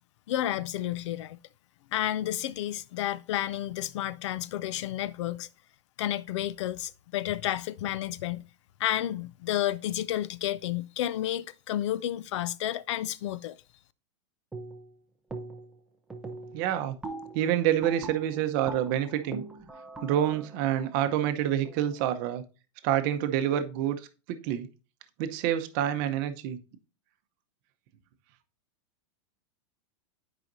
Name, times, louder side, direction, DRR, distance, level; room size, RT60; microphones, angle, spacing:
voice 1, 0.3-1.4 1.9-5.5 6.0-8.4 8.8-13.6, left 13 dB, 65° left, 0.5 m, -31 dB
sound 1, 14.5-15.0 15.3-15.8 16.1-21.9, right 3 dB, 5° right, 0.6 m, -42 dB
voice 2, 16.5-17.0 17.3-19.4 20.0-22.4 22.8-24.7 25.2-26.6, right 11 dB, 40° right, 0.7 m, -27 dB
10.5 x 5.0 x 2.6 m
supercardioid pair, 165°, 16 cm